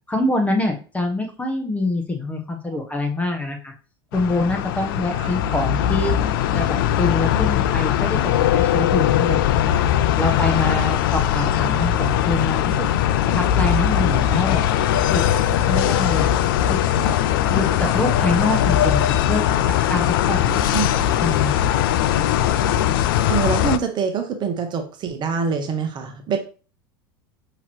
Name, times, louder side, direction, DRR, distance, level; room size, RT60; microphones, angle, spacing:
voice 1, 0.1-3.7 4.1-6.2 6.5-9.8 10.2-12.9 13.3-14.6 15.1-15.2 15.6-16.3 16.7-16.8 17.5-19.4 19.9-20.5 21.2-21.5, left 2 dB, 10° left, 4 dB, 1.0 m, -25 dB
sound 1, 4.1-23.8, left 11 dB, 65° left, 0.4 m, -20 dB
voice 2, 20.5-20.8 23.3-26.4, right 6 dB, 35° right, 6 dB, 0.8 m, -25 dB
5.6 x 2.9 x 3.1 m, 0.36 s
hypercardioid pair, 85°, 12 cm